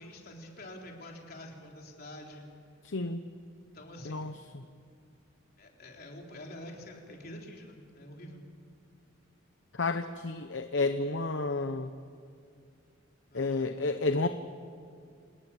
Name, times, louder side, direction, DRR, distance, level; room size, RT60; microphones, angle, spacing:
voice 1, 0.0-2.5 3.7-4.3 5.6-8.4 13.3-14.0, left 1 dB, 50° left, 0 dB, 3.8 m, -47 dB
voice 2, 2.8-3.2 4.1-4.6 9.7-11.9 13.3-14.3, left 3 dB, 65° left, 9 dB, 0.9 m, -31 dB
27.5 x 20.0 x 7.4 m, 2.3 s
head